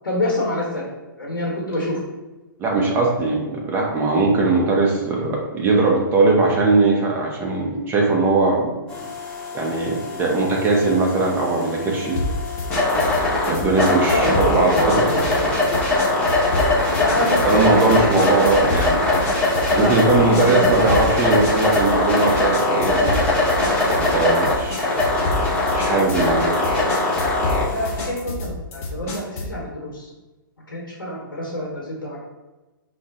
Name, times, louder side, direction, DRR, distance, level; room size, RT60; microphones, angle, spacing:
voice 1, 0.0-0.9 1.2-2.0 14.1-15.5 17.0-18.1 19.7-21.0 27.7-30.1 30.7-32.2, left 1 dB, 85° left, -4 dB, 0.8 m, -26 dB
voice 2, 2.6-9.1 9.5-12.2 13.5-15.6 17.4-19.0 19.7-23.2 23.9-24.9 25.8-26.7, right 3 dB, 20° right, -1 dB, 0.6 m, -20 dB
sound 1, 8.9-28.1, left 2 dB, 10° left, 0.9 m, -22 dB
sound 2, 12.2-29.6, left 2 dB, 40° left, 0.6 m, -29 dB
2.5 x 2.1 x 3.6 m, 1.1 s
figure-of-eight pair, 120°, 11 cm